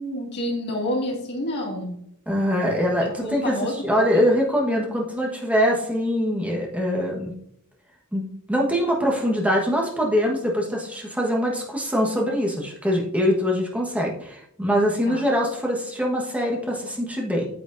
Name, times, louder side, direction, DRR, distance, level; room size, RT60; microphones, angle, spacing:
voice 1, 0.0-2.0 3.2-4.2 15.0-15.3, left 1 dB, 50° left, -2 dB, 2.2 m, -28 dB
voice 2, 2.3-3.6 3.8-7.3 8.1-17.5, equal, 5° right, -2 dB, 1.3 m, -23 dB
8.8 x 8.0 x 2.6 m, 0.72 s
head